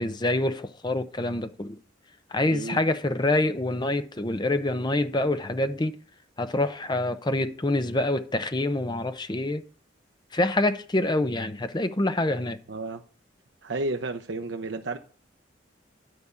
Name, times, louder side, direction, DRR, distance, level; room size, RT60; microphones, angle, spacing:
voice 1, 0.0-1.8 2.3-5.9 6.4-9.6 10.3-12.6, left 2 dB, 25° left, 0.7 m, -26 dB
voice 2, 12.7-13.0 13.6-15.0, right 2 dB, 70° right, 0.8 m, -32 dB
11.0 x 5.3 x 8.3 m
head